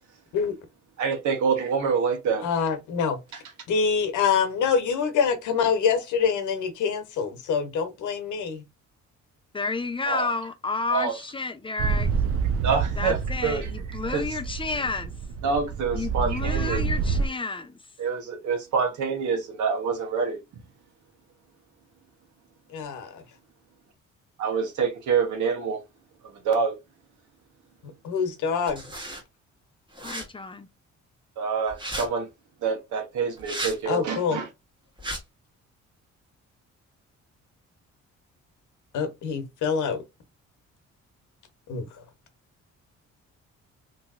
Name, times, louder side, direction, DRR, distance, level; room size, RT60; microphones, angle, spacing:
voice 1, 1.0-2.5 10.1-10.3 10.9-11.1 12.6-13.2 13.4-13.7 14.1-14.2 15.4-16.8 18.0-20.4 24.4-25.8 26.4-26.8 31.4-32.3 32.6-34.5, right 5 dB, 75° right, 1.2 m, -26 dB
voice 2, 2.4-3.2 3.7-8.6 22.7-23.2 27.8-28.8 33.9-34.4 38.9-40.0 41.7-41.9, left 6 dB, 80° left, 0.9 m, -25 dB
voice 3, 9.5-12.1 13.0-15.1 15.9-17.8 30.0-30.7, left 3 dB, 15° left, 0.5 m, -31 dB
sound 1, 11.8-17.3, right 5 dB, 50° right, 0.4 m, -28 dB
sound 2, 28.7-29.2 29.9-30.3 31.7-32.1 33.4-33.8 35.0-35.2, right 1 dB, 15° right, 1.4 m, -34 dB
3.0 x 2.7 x 2.4 m
cardioid pair, 90°, 30 cm